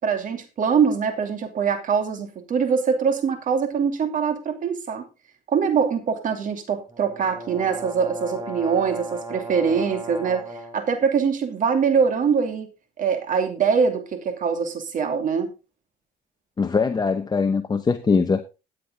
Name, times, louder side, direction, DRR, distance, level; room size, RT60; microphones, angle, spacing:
voice 1, 0.0-5.1 5.5-12.7 13.0-15.5, right 6 dB, 50° right, 2.7 m, -23 dB
sound 1, 6.9-10.8, equal, 25° right, 3.6 m, -36 dB
voice 2, 16.6-18.5, left 4 dB, 25° left, 0.8 m, -22 dB
14.0 x 8.5 x 3.6 m
cardioid pair, 110°, 17 cm